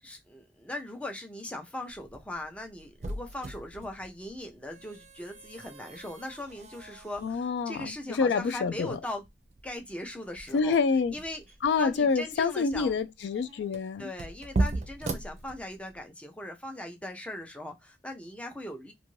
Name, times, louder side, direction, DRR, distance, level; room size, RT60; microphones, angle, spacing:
voice 1, 0.0-9.2 9.6-10.8 11.1-11.4 11.8-13.0 14.0-18.9, left 1 dB, 5° left, 0.5 m, -39 dB
sound 1, 1.9-16.0, right 2 dB, 40° right, 0.5 m, -38 dB
voice 2, 7.2-9.0 10.5-11.2 11.6-14.1, left 5 dB, 75° left, 0.3 m, -27 dB
2.6 x 2.5 x 3.0 m
head